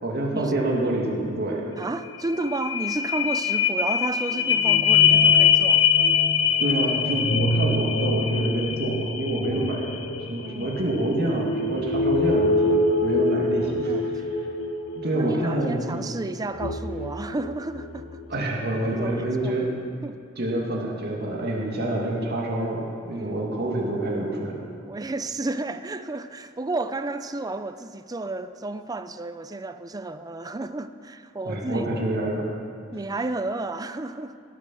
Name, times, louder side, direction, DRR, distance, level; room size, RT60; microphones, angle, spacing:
voice 1, 0.0-1.6 6.6-9.8 10.3-14.2 14.9-16.0 18.3-19.7 20.4-24.6 31.5-32.6, right 1 dB, 55° right, -2 dB, 2.3 m, -27 dB
sound 1, 1.8-1.9 2.2-18.1 18.6-18.7, left 5 dB, 80° left, 1.0 m, -23 dB
voice 2, 1.8-5.9 9.3-9.7 10.4-10.8 13.6-14.3 15.1-18.2 18.8-19.5 20.0-20.2 23.2-23.5 24.8-31.9 32.9-34.4, right 2 dB, 20° right, 10 dB, 0.4 m, -32 dB
18.0 x 8.0 x 6.3 m, 2.4 s
head